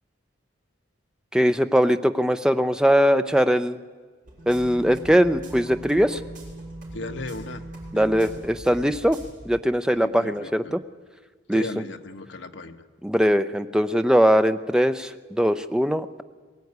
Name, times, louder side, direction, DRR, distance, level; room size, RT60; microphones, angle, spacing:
voice 1, 1.3-3.8 4.5-6.2 7.9-9.2 9.4-10.8 11.5-11.6 13.0-16.2, equal, 5° right, 9 dB, 0.6 m, -21 dB
sound 1, 4.2-8.8 9.1-9.3, right 1 dB, 40° right, 6.5 m, -40 dB
voice 2, 6.9-7.6 7.9-8.3 10.0-10.8 11.5-12.9, left 2 dB, 65° left, 6 dB, 1.2 m, -36 dB
21.5 x 16.5 x 9.5 m, 1.4 s
head